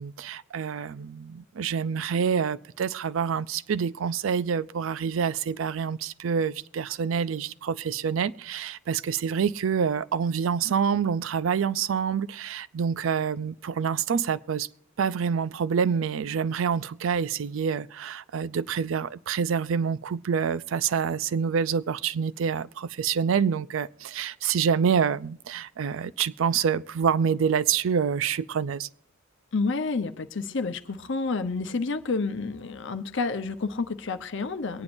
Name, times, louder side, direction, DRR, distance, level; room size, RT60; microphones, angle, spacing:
voice 1, 0.0-14.7 15.0-28.9, right 7 dB, 75° right, 0.4 m, -27 dB
voice 2, 29.5-34.8, left 3 dB, 65° left, 0.8 m, -29 dB
23.5 x 9.6 x 2.6 m
head